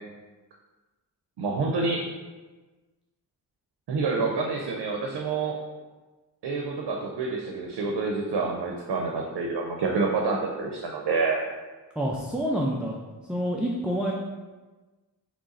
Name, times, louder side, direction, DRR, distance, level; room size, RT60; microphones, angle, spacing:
voice 1, 1.4-2.1 3.9-5.6 6.4-11.4, right 4 dB, 90° right, 1 dB, 0.6 m, -27 dB
voice 2, 12.0-13.0 13.3-14.1, equal, 5° right, -3 dB, 0.4 m, -27 dB
3.8 x 3.1 x 4.0 m, 1.2 s
wide cardioid pair, 80°, 40 cm